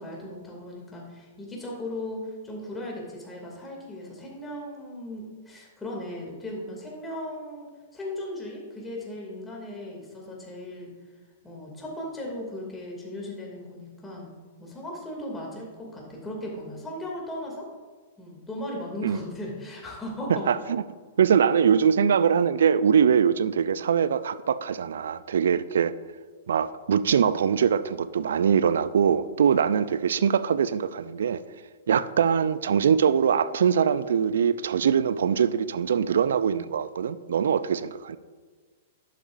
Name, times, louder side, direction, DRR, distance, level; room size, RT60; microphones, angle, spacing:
voice 1, 0.0-10.9 11.4-14.3 14.6-17.7 18.2-20.5, left 1 dB, 10° left, 2.6 m, -37 dB
voice 2, 20.3-20.8 21.2-25.9 26.5-31.4 31.9-38.2, right 7 dB, 65° right, 0.4 m, -22 dB
11.5 x 8.3 x 2.6 m
figure-of-eight pair, 105°, 0 cm